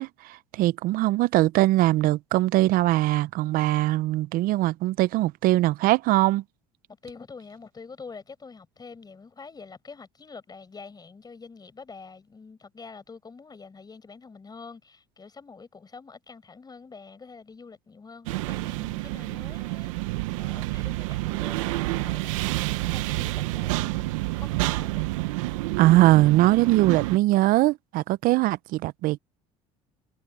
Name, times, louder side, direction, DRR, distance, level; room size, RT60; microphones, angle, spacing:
voice 1, 0.0-6.4 25.8-29.2, right 17 dB, 60° right, 0.7 m, -21 dB
voice 2, 7.0-25.1, left 4 dB, 25° left, 5.4 m, -46 dB
sound 1, 18.3-27.2, right 20 dB, 85° right, 1.0 m, -29 dB
supercardioid pair, 85°, 16 cm